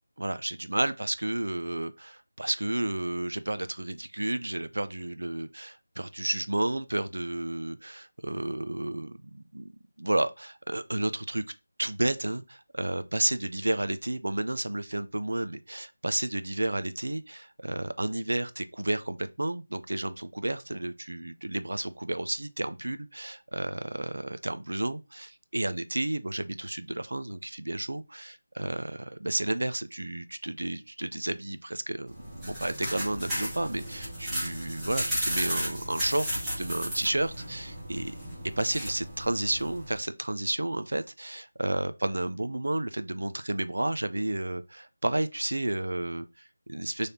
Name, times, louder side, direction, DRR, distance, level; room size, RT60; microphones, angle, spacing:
voice 1, 0.2-9.7 10.0-11.4 11.8-32.2 32.4-38.2 38.6-47.1, right 1 dB, 85° right, 0.4 m, -31 dB
sound 1, 32.1-40.0, equal, 5° right, 0.7 m, -34 dB
4.1 x 3.3 x 2.7 m
figure-of-eight pair, 180°, 0 cm